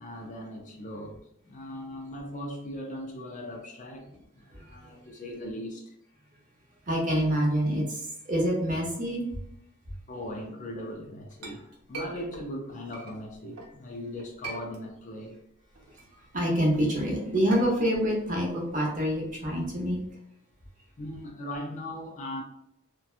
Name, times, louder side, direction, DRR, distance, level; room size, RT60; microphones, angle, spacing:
voice 1, 0.0-6.0 10.1-15.4 21.0-22.4, left 1 dB, 35° left, 2 dB, 0.4 m, -39 dB
voice 2, 6.9-9.2 16.3-20.0, equal, 35° right, -2 dB, 0.8 m, -26 dB
Chink clink, 10.9-13.8 14.2-15.2 15.6-19.7, right 3 dB, 85° right, 0.7 m, -44 dB
2.7 x 2.2 x 2.4 m, 0.79 s
head